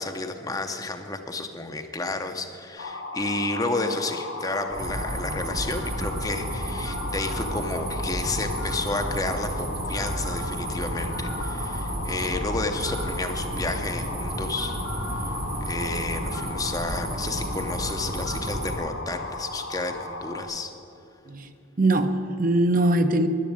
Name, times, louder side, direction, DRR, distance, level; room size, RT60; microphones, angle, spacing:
voice 1, 0.0-14.8 15.1-20.7, left 2 dB, 15° left, 6 dB, 0.7 m, -31 dB
sound 1, 2.8-20.4, left 3 dB, 75° left, 1.8 m, -35 dB
sound 2, 4.7-18.8, right 1 dB, 80° right, 2.8 m, -32 dB
voice 2, 21.8-23.3, right 2 dB, 40° right, 8 dB, 0.7 m, -21 dB
10.5 x 10.5 x 8.8 m, 2.9 s
head